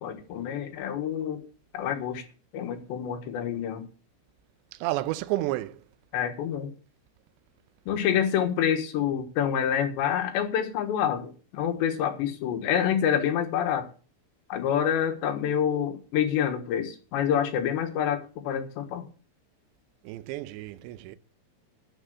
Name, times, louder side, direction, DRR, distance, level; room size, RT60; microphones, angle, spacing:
voice 1, 0.0-1.4 1.7-2.2 2.5-3.9 6.1-6.7 7.9-13.9 14.5-19.0, left 9 dB, 85° left, 3.6 m, -27 dB
voice 2, 4.8-5.8 20.1-21.2, right 16 dB, 85° right, 2.9 m, -31 dB
11.5 x 5.6 x 8.0 m
omnidirectional pair, 5.0 m